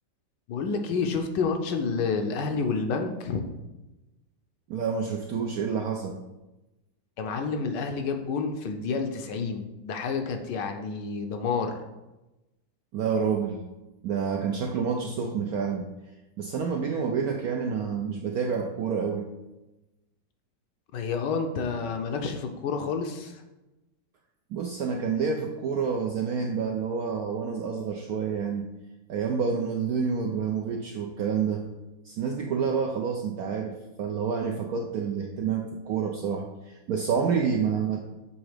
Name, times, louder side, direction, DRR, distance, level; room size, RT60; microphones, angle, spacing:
voice 1, 0.5-3.4 7.2-11.8 20.9-23.4, left 5 dB, 75° left, 5 dB, 1.2 m, -29 dB
voice 2, 4.7-6.2 12.9-13.6 14.0-15.9 16.4-19.3 24.5-28.7 29.1-31.7 32.0-38.0, right 6 dB, 75° right, 2 dB, 0.8 m, -28 dB
7.1 x 3.6 x 4.8 m, 1.0 s
omnidirectional pair, 2.1 m